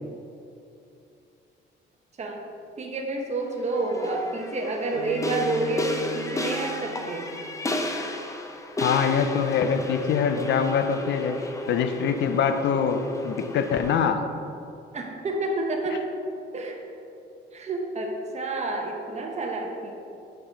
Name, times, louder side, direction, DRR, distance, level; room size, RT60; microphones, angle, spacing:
voice 1, 2.8-7.3 14.9-16.1 16.5-16.8 17.5-19.9, right 2 dB, 35° right, 1 dB, 0.8 m, -29 dB
sound 1, 3.7-14.0, left 1 dB, 15° left, 0.6 m, -33 dB
Bowed string instrument, 4.9-7.9, right 7 dB, 75° right, 0.6 m, -40 dB
voice 2, 8.8-11.4 11.7-14.2, left 7 dB, 65° left, 8 dB, 0.5 m, -24 dB
6.1 x 4.8 x 4.0 m, 2.7 s
cardioid pair, 90°, 20 cm